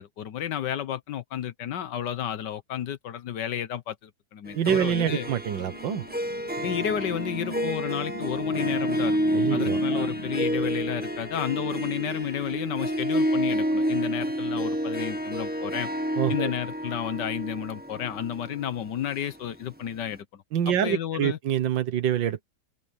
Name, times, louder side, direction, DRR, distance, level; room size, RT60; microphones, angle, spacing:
voice 1, 0.0-5.3 6.6-9.2 9.5-15.9 16.3-21.4, left 10 dB, 65° left, 1.5 m, -32 dB
Harp, 4.5-19.8, equal, 5° right, 1.4 m, -29 dB
voice 2, 4.5-6.0 9.3-10.1 16.2-16.5 20.5-22.4, right 9 dB, 70° right, 1.7 m, -26 dB
sound 1, 5.5-13.3, left 1 dB, 80° left, 2.9 m, -41 dB
open air
omnidirectional pair, 2.1 m